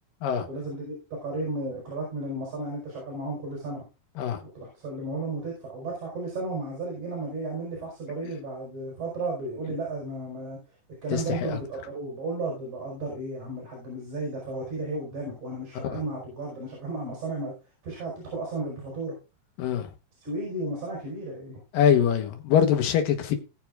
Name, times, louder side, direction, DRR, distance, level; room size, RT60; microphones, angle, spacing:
voice 1, 0.5-3.8 4.5-10.6 11.0-17.5 17.8-19.2 20.2-21.6, right 2 dB, 60° right, 6.1 m, -34 dB
voice 2, 11.1-11.6 15.8-16.0 19.6-19.9 21.7-23.4, left 8 dB, 80° left, 3.0 m, -23 dB
20.0 x 6.8 x 2.5 m
omnidirectional pair, 3.9 m